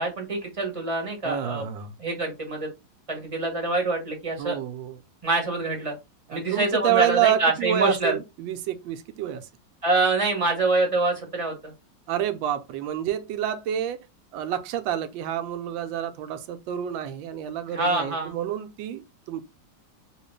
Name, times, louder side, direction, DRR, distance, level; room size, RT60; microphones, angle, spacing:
voice 1, 0.0-1.6 2.0-2.7 3.1-4.6 5.2-5.9 6.3-8.2 9.8-11.7 17.7-18.3, right 2 dB, 25° right, 0.8 m, -25 dB
voice 2, 1.2-1.9 4.4-5.0 6.3-9.5 12.1-14.0 14.3-19.4, right 10 dB, 85° right, 1.3 m, -28 dB
3.0 x 2.9 x 3.1 m
omnidirectional pair, 2.1 m